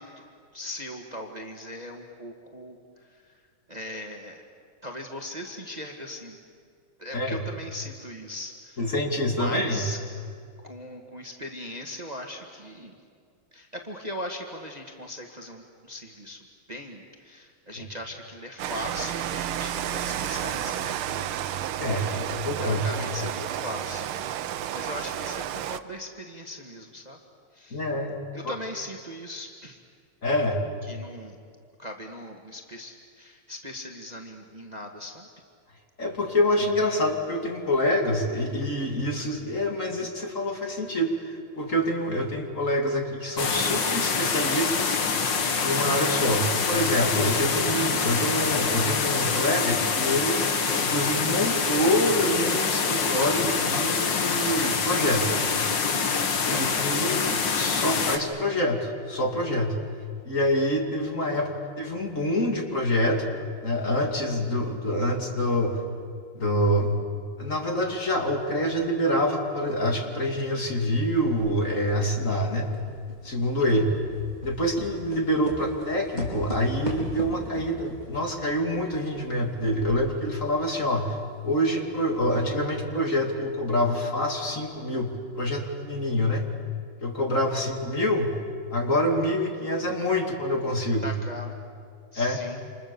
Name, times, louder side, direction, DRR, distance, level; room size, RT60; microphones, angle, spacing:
voice 1, 0.0-3.4 3.7-4.4 4.8-6.4 7.0-8.9 9.4-10.0 10.6-13.0 13.5-22.3 22.6-27.2 27.5-27.9 28.3-29.8 30.8-31.4 31.8-35.3 56.4-56.7 73.6-73.9 91.0-91.6 92.1-92.6, left 1 dB, 20° right, 2 dB, 1.9 m, -39 dB
voice 2, 8.8-9.8 21.8-22.1 22.4-22.8 27.7-28.2 28.4-28.5 30.2-30.6 36.0-45.0 45.6-50.4 50.8-55.4 56.4-59.8 60.2-61.5 61.8-63.2 63.6-65.8 66.3-66.9 67.4-72.7 73.2-73.9 74.4-81.2 81.4-86.4 87.0-88.4 88.7-91.1 92.2-92.4, left 1 dB, 40° left, 2 dB, 3.1 m, -26 dB
Rain, 18.6-25.8, right 10 dB, 85° right, 1.7 m, -31 dB
sound 1, 43.4-58.2, left 5 dB, 60° left, 2.3 m, -25 dB
sound 2, 69.0-70.7 71.0-80.6 80.8-80.9 81.4-81.5 82.0-82.5, left 1 dB, 20° left, 4.8 m, -40 dB
29.0 x 27.5 x 7.0 m, 2.1 s
omnidirectional pair, 2.3 m